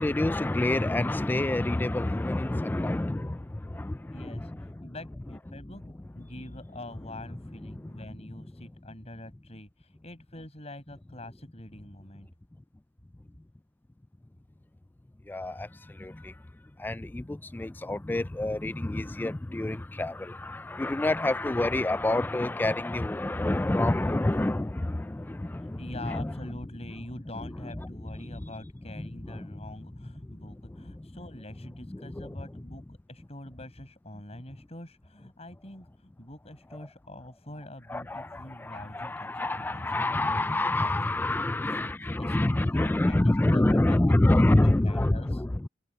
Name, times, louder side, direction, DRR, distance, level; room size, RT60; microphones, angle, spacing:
voice 1, 0.0-4.9 5.5-5.6 7.7-8.4 15.3-16.4 16.8-26.4 27.4-28.5 29.0-29.6 30.0-31.2 31.9-32.6 37.9-45.7, left 1 dB, 10° left, 0.3 m, -28 dB
voice 2, 4.1-12.3 25.6-41.4 41.7-44.0 44.3-45.4, left 1 dB, 35° left, 6.1 m, -45 dB
head